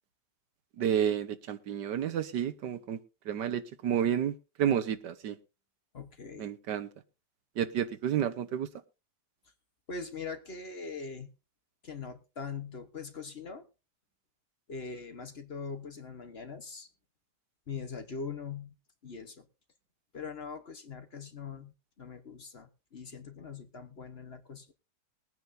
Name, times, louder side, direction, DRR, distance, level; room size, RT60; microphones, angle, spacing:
voice 1, 0.8-3.0 3.2-5.4 6.4-6.9 7.6-8.7, right 9 dB, 85° right, 12 dB, 1.6 m, -30 dB
voice 2, 5.9-6.5 9.9-11.3 11.8-13.7 14.7-16.9 17.7-18.7 19.0-19.4 20.1-24.7, left 5 dB, 40° left, 8 dB, 1.2 m, -42 dB
21.5 x 9.3 x 2.6 m, 0.29 s
omnidirectional pair, 1.8 m